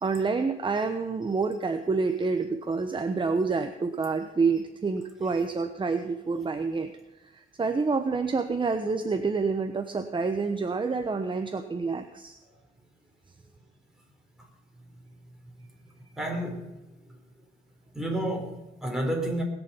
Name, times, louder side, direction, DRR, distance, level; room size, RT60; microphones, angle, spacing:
voice 1, 0.0-6.9 7.3-12.3, right 4 dB, 25° right, 7 dB, 1.1 m, -28 dB
voice 2, 16.2-16.7 17.9-19.4, right 1 dB, 5° right, 0 dB, 4.2 m, -30 dB
20.5 x 7.2 x 5.7 m, 1.0 s
cardioid pair, 90°, 20 cm